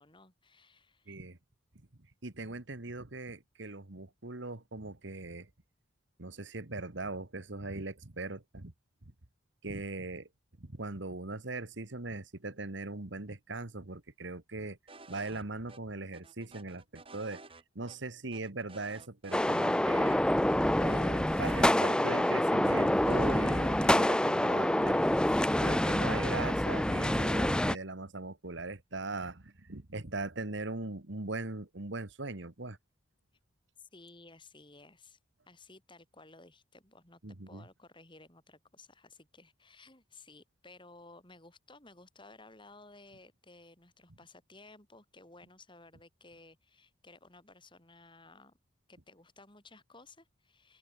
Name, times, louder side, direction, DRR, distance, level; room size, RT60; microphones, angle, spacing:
voice 1, 0.0-1.2 33.8-35.2 35.5-48.6 48.9-50.8, left 3 dB, 25° left, 7.7 m, -56 dB
voice 2, 1.1-1.4 2.2-5.5 6.2-8.7 9.6-10.3 10.6-14.8 15.1-17.4 17.7-20.2 20.8-25.1 25.6-32.8 37.2-37.6, right 2 dB, 60° right, 1.7 m, -40 dB
sound 1, 14.9-15.4 15.7-15.8 16.1-17.6 17.9-18.0 18.3-19.8 20.1-20.2 20.5-22.3 22.7-23.4, right 3 dB, 25° right, 4.2 m, -52 dB
sound 2, 19.3-27.8, left 1 dB, 5° left, 0.4 m, -27 dB
open air
head